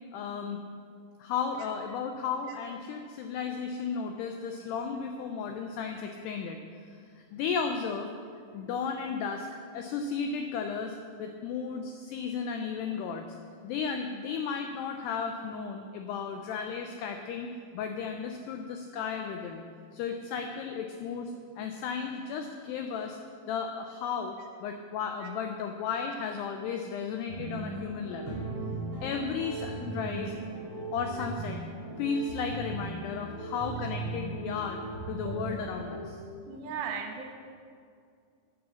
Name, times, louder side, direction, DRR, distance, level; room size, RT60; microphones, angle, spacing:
voice 1, 0.1-0.6 1.2-6.6 7.2-8.1 8.5-9.5 9.7-13.2 13.6-19.6 19.9-23.2 23.5-24.4 24.6-28.4 29.0-30.3 30.9-31.6 32.0-34.8 35.1-36.2, left 6 dB, 85° left, 5 dB, 2.3 m, -34 dB
sound 1, 27.3-36.0, right 3 dB, 20° right, 3.8 m, -38 dB
voice 2, 36.5-37.3, right 6 dB, 75° right, 3 dB, 2.8 m, -36 dB
9.7 x 9.5 x 7.0 m, 2.3 s
omnidirectional pair, 5.5 m